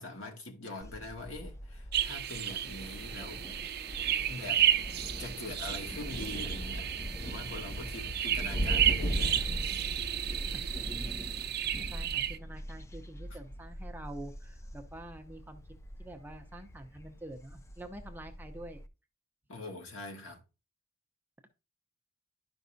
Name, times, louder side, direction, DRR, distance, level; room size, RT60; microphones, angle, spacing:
voice 1, 0.0-3.6 4.3-4.7 5.2-6.9 7.2-9.5 13.3-13.4 19.5-20.4, left 2 dB, 85° left, 2.0 m, -43 dB
Thunder, 0.8-18.9, equal, 15° left, 0.4 m, -40 dB
sound 1, 1.9-12.4, right 10 dB, 50° right, 0.6 m, -32 dB
voice 2, 11.6-15.6 16.0-18.8, right 1 dB, 10° right, 0.7 m, -47 dB
11.5 x 5.3 x 2.7 m
head